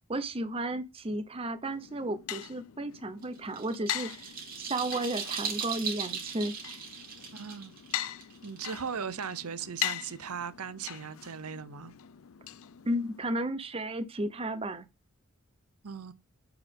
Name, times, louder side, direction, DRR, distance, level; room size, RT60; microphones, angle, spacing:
voice 1, 0.1-4.1 4.6-6.5 12.8-14.9, right 1 dB, 25° right, 0.7 m, -33 dB
sound 1, 1.7-13.3, left 11 dB, 70° left, 0.5 m, -41 dB
sound 2, 3.2-9.0, right 6 dB, 40° right, 2.5 m, -38 dB
voice 2, 7.3-7.7 8.4-11.9 15.8-16.1, right 6 dB, 90° right, 0.8 m, -38 dB
8.8 x 4.7 x 3.5 m
head